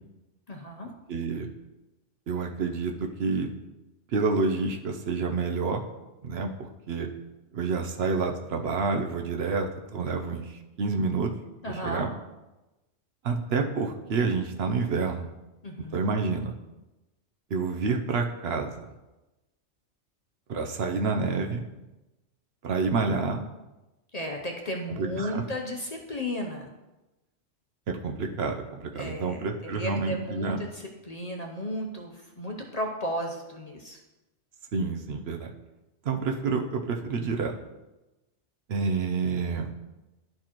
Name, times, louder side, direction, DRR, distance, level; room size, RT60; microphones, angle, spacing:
voice 1, 0.5-0.9 11.6-12.1 15.6-16.1 24.1-26.7 28.9-34.0, equal, 40° left, 0 dB, 0.7 m, -34 dB
voice 2, 1.1-1.5 2.3-3.5 4.1-5.8 6.2-7.1 7.5-11.3 11.8-12.1 13.2-15.3 15.9-16.5 17.5-18.7 20.5-21.6 22.6-23.4 24.9-25.4 27.9-30.6 34.7-35.5 36.0-37.5 38.7-39.7, right 4 dB, 60° right, 3 dB, 0.8 m, -28 dB
11.5 x 4.5 x 3.0 m, 1.0 s
omnidirectional pair, 1.3 m